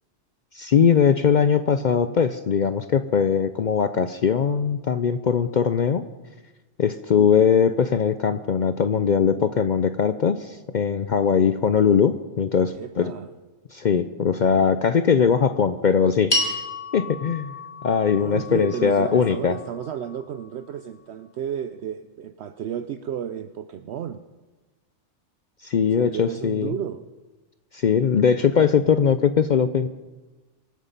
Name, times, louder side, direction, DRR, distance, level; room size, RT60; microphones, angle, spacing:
voice 1, 0.5-6.0 6.8-13.1 13.7-16.6 16.9-17.5 17.8-19.5 25.6-26.7 27.7-29.9, left 7 dB, 60° left, 11 dB, 0.5 m, -20 dB
voice 2, 12.7-13.3 18.2-24.2 25.9-27.0, right 9 dB, 65° right, 10 dB, 0.8 m, -32 dB
sound 1, 16.3-20.8, left 2 dB, 35° left, 2.7 m, -31 dB
24.0 x 8.3 x 5.3 m, 1.2 s
omnidirectional pair, 1.3 m